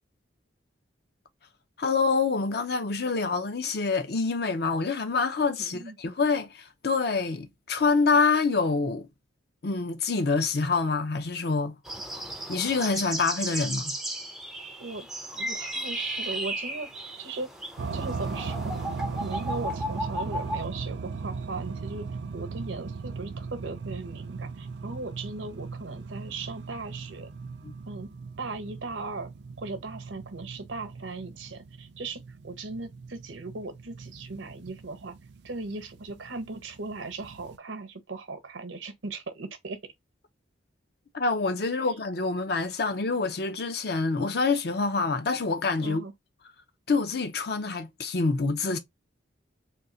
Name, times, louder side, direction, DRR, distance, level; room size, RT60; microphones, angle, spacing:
voice 1, 1.8-9.1 9.6-11.8 12.5-13.9 27.6-27.7 41.1-46.0 46.9-48.8, left 4 dB, 55° left, 0.5 m, -26 dB
voice 2, 5.6-6.0 14.8-15.1 15.3-16.9 17.2-17.5 17.9-18.8 19.2-22.1 22.3-27.3 27.9-28.1 28.4-29.3 29.6-35.1 35.4-39.8 41.8-41.9 45.8-46.1, right 3 dB, 80° right, 0.9 m, -38 dB
sound 1, 11.9-20.6, right 1 dB, ahead, 0.4 m, -35 dB
sound 2, 17.8-37.6, right 4 dB, 60° right, 0.4 m, -38 dB
3.6 x 2.8 x 2.7 m
head